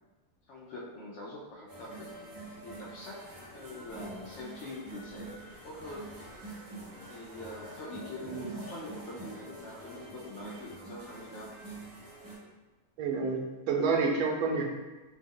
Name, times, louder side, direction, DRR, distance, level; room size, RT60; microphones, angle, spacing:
voice 1, 0.5-2.1 2.6-3.2 3.5-5.3 5.6-6.1 7.1-11.5, left 2 dB, 65° left, -4 dB, 0.8 m, -44 dB
sound 1, 1.7-12.4, right 2 dB, 25° right, 0.4 m, -46 dB
voice 2, 13.0-14.8, right 4 dB, 85° right, 0 dB, 1.1 m, -29 dB
2.8 x 2.1 x 3.6 m, 1.2 s
omnidirectional pair, 1.6 m